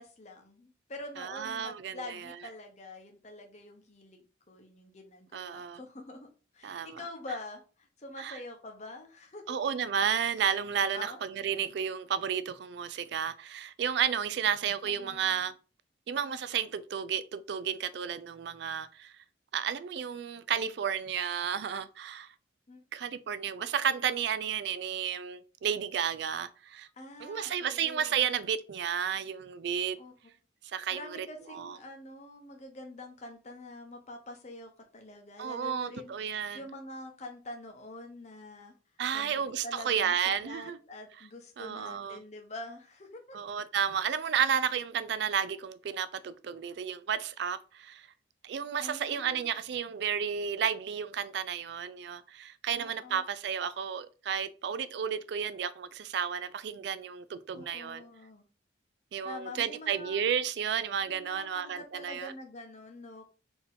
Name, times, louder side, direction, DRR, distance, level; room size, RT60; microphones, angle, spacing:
voice 1, 0.0-6.3 6.5-9.6 10.9-11.2 14.4-14.5 14.8-15.5 22.7-22.8 26.9-28.3 30.0-30.1 30.7-38.7 39.1-43.4 48.8-49.5 52.8-53.2 57.5-58.5 59.2-60.3 61.1-63.3, left 2 dB, 35° left, 0.8 m, -46 dB
voice 2, 1.2-2.2 5.3-5.8 6.6-7.0 8.2-8.4 9.5-15.5 16.1-19.1 19.5-22.3 22.9-26.9 27.2-30.0 30.7-31.8 35.4-36.6 39.0-40.8 41.6-42.2 43.3-48.1 48.4-58.0 59.1-62.3, right 8 dB, 55° right, 0.3 m, -32 dB
4.4 x 2.9 x 3.5 m
head